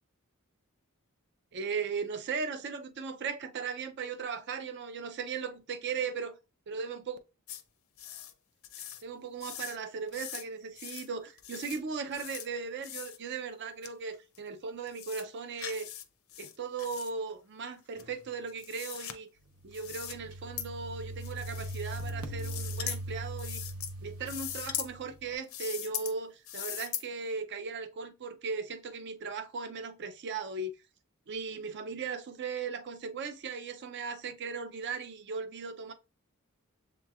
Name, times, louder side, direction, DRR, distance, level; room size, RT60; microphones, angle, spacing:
voice 1, 1.5-6.3 6.7-7.2 9.0-15.9 16.4-19.3 19.6-23.6 24.0-30.7 31.3-35.9, right 5 dB, 55° right, 0.5 m, -37 dB
sound 1, 7.5-7.6 8.0-8.3 8.6-9.0 9.4-9.8 10.1-10.4 10.8-11.1 11.4-11.8 12.1-12.5 12.8-13.2 13.8-13.9 14.3-14.4 14.9-15.2 15.6-16.0 16.3-17.1 18.0-19.1 19.7-20.2 20.6-20.7 21.2-22.1 22.4-23.0 23.4-23.9 24.2-24.9 25.4-26.1 26.5-27.0, left 11 dB, 70° left, 0.6 m, -40 dB
sound 2, 19.6-25.2, right 1 dB, 80° right, 0.8 m, -40 dB
7.2 x 3.0 x 2.3 m
head